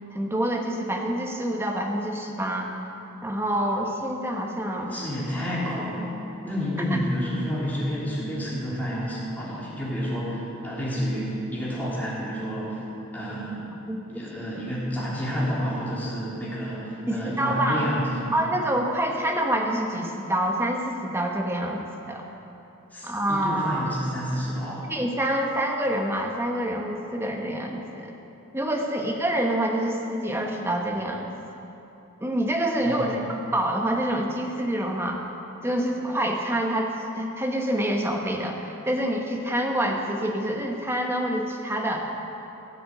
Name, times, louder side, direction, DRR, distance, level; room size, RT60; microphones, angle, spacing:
voice 1, 0.1-2.7 3.2-5.0 13.9-14.0 17.1-17.9 18.3-22.2 23.0-23.9 24.9-28.1 28.5-31.3 32.2-33.2 33.5-35.2 35.6-42.1, right 1 dB, 10° right, 1 dB, 1.2 m, -27 dB
voice 2, 4.9-6.1 6.4-12.8 13.1-13.7 14.1-18.3 22.9-24.9 32.8-33.3, equal, 10° left, -8 dB, 3.4 m, -29 dB
15.0 x 7.7 x 7.8 m, 3.0 s
head